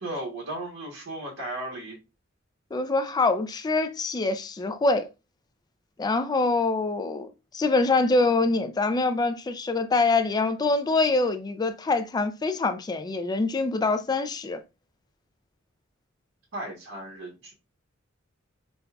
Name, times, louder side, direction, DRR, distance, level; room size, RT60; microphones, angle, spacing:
voice 1, 0.0-2.0 16.5-17.5, right 1 dB, 85° right, 1.2 m, -35 dB
voice 2, 2.7-5.1 6.0-7.3 7.5-14.6, left 3 dB, 20° left, 0.3 m, -24 dB
5.2 x 2.2 x 2.3 m
head